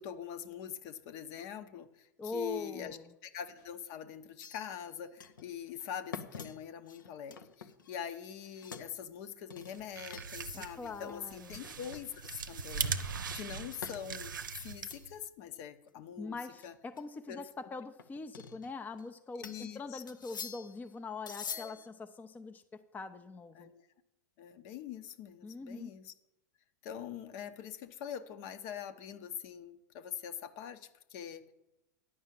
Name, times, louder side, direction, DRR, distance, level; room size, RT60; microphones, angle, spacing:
voice 1, 0.0-3.0 3.2-13.0 13.3-16.4 16.6-16.7 17.3-17.7 19.4-20.0 21.5-21.8 23.5-23.8 24.4-26.1 26.8-31.5, left 9 dB, 55° left, 9 dB, 0.9 m, -44 dB
voice 2, 2.2-3.1 10.5-11.6 16.2-23.7 25.4-25.9, left 3 dB, 15° left, 8 dB, 0.5 m, -43 dB
sound 1, 4.4-4.9 5.2-5.5 5.8-8.2 8.4-8.9 9.5-10.5 10.9-11.1 11.6-12.4 13.3-14.0 14.4-15.1 15.4-15.5 15.9-16.0 16.6-17.0 18.0-19.0 19.4-19.7 20.1-20.8 21.3-21.9, left 6 dB, 90° left, 0.7 m, -46 dB
sound 2, 9.7-15.2, right 5 dB, 90° right, 0.6 m, -40 dB
9.7 x 5.5 x 7.6 m, 0.88 s
hypercardioid pair, 100°, 10 cm